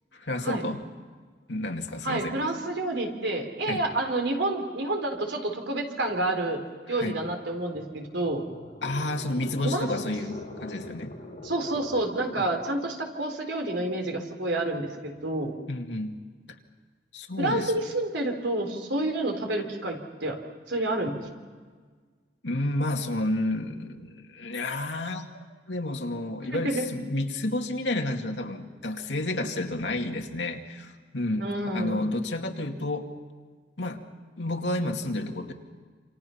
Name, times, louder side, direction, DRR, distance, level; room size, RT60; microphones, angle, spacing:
voice 1, 0.1-0.8 1.5-2.4 3.7-3.8 6.9-7.2 8.8-11.1 15.7-16.2 17.1-17.7 22.4-25.2 25.7-33.1 33.8-34.0 34.4-35.5, left 1 dB, 85° left, 3 dB, 2.4 m, -30 dB
voice 2, 2.0-6.6 6.9-8.4 9.6-9.9 11.4-15.5 17.4-20.4 20.7-21.2 26.5-26.9 31.4-32.0, right 2 dB, 90° right, 4 dB, 4.0 m, -29 dB
sound 1, 7.9-12.7, left 1 dB, 40° left, 4.3 m, -43 dB
28.0 x 27.0 x 5.8 m, 1.5 s
head